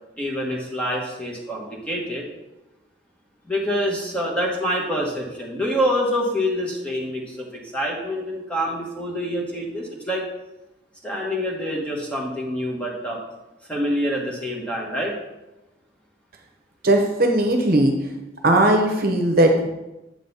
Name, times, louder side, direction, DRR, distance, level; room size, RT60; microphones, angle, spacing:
voice 1, 0.2-2.2 3.5-10.3 11.0-13.2 13.7-15.1, equal, 5° left, -2 dB, 1.3 m, -26 dB
voice 2, 16.8-17.9 18.4-19.7, right 1 dB, 50° right, 2 dB, 0.9 m, -18 dB
7.8 x 4.1 x 5.5 m, 0.99 s
head